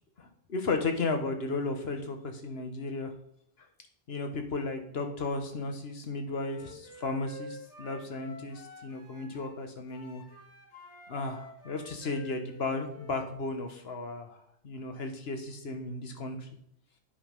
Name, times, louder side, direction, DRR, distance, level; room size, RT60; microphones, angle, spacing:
voice 1, 0.2-3.1 4.1-10.2 11.1-16.5, left 3 dB, 70° left, 5 dB, 1.5 m, -34 dB
Wind instrument woodwind instrument, 6.4-9.6 9.9-13.3, left 1 dB, 90° left, 1.8 m, -49 dB
9.1 x 5.2 x 5.3 m, 0.69 s
omnidirectional pair, 1.1 m